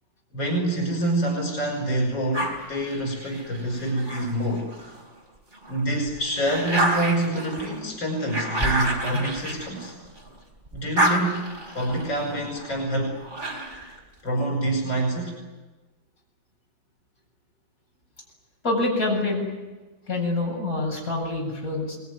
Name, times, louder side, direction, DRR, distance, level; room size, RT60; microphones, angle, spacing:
voice 1, 0.3-4.7 5.7-9.9 10.7-11.4 11.7-13.2 14.2-15.4, right 1 dB, 85° left, 1 dB, 6.3 m, -26 dB
sound 1, 2.3-5.0 5.5-10.3 10.7-14.0, right 1 dB, 25° right, 4.1 m, -29 dB
voice 2, 18.6-19.5 20.1-22.0, left 2 dB, 45° left, -1 dB, 8.3 m, -26 dB
24.5 x 21.5 x 9.7 m, 1.2 s
omnidirectional pair, 2.0 m